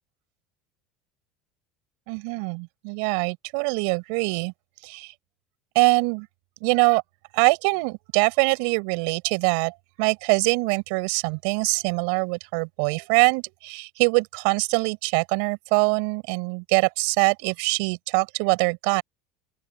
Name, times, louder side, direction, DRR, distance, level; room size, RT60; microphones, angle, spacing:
voice 1, 2.1-4.5 4.8-5.1 5.7-6.3 6.6-7.0 7.3-19.0, right 34 dB, 65° right, 6.6 m, -23 dB
open air
cardioid pair, 175°, 0 cm